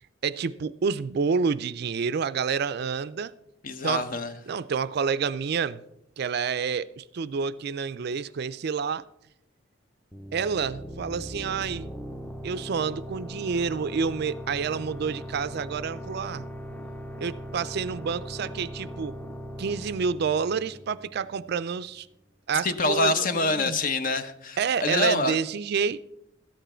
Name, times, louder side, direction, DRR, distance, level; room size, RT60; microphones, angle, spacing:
voice 1, 0.2-3.3 3.8-4.0 4.5-5.8 6.2-9.0 10.3-11.9 12.4-16.4 17.2-19.2 19.6-22.1 22.5-23.8 24.6-26.0, right 6 dB, 55° right, 0.4 m, -28 dB
voice 2, 3.6-4.3 22.6-25.4, left 2 dB, 45° left, 0.7 m, -26 dB
sound 1, 10.1-21.5, equal, 5° left, 0.6 m, -39 dB
13.5 x 9.2 x 4.3 m
head